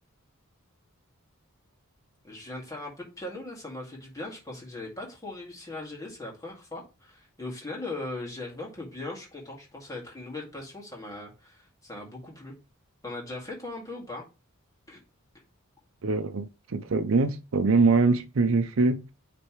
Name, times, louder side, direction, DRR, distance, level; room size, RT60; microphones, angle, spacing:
voice 1, 2.2-12.6 13.0-14.2 14.9-15.0, left 2 dB, 15° left, 2.1 m, -39 dB
voice 2, 16.0-19.0, right 3 dB, 70° right, 0.6 m, -23 dB
9.4 x 3.4 x 3.1 m
head